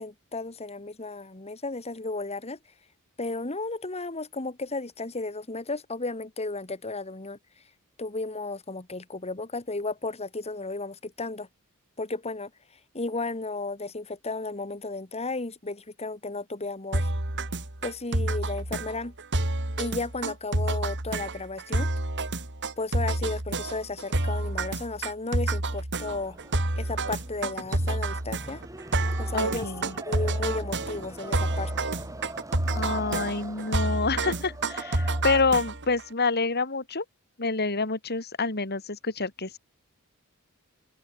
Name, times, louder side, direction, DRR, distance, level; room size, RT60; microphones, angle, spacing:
voice 1, 0.0-2.6 3.2-7.4 8.0-11.5 12.0-12.5 12.9-17.1 17.8-19.1 19.8-21.9 22.8-26.4 26.8-28.6 29.2-29.7 30.1-31.9, left 3 dB, 30° left, 2.0 m, -34 dB
sound 1, 16.9-36.0, right 2 dB, 55° right, 3.8 m, -29 dB
sound 2, 26.1-35.6, right 2 dB, 15° right, 7.2 m, -43 dB
voice 2, 29.3-29.9 32.7-37.0 37.4-39.6, left 3 dB, 50° left, 3.8 m, -27 dB
open air
head